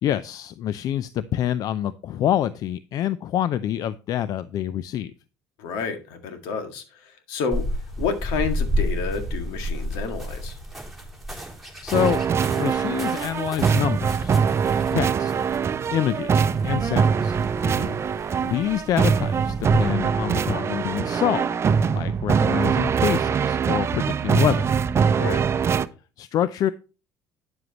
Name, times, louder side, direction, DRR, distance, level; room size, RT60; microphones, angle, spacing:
voice 1, 0.0-5.1 11.8-12.2 12.6-14.4 14.9-15.3 15.9-17.4 18.4-24.7 26.2-26.7, left 11 dB, 60° left, 0.5 m, -26 dB
voice 2, 5.6-7.7 8.0-10.6 17.6-18.0 25.1-25.4, left 5 dB, 80° left, 1.8 m, -30 dB
sound 1, 7.5-19.9, equal, 5° right, 3.4 m, -32 dB
sound 2, 11.9-25.9, right 6 dB, 35° right, 0.6 m, -23 dB
9.5 x 7.6 x 3.0 m
supercardioid pair, 80°, 7 cm